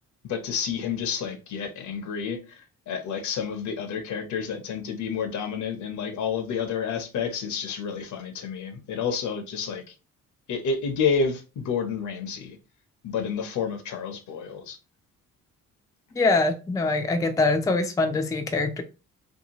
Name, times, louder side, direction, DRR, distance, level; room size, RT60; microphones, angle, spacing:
voice 1, 0.2-9.9 10.5-12.6 13.0-14.8, left 6 dB, 70° left, 0.7 m, -30 dB
voice 2, 16.2-18.8, left 3 dB, 10° left, 0.4 m, -23 dB
2.7 x 2.3 x 2.8 m
cardioid pair, 90°, 30 cm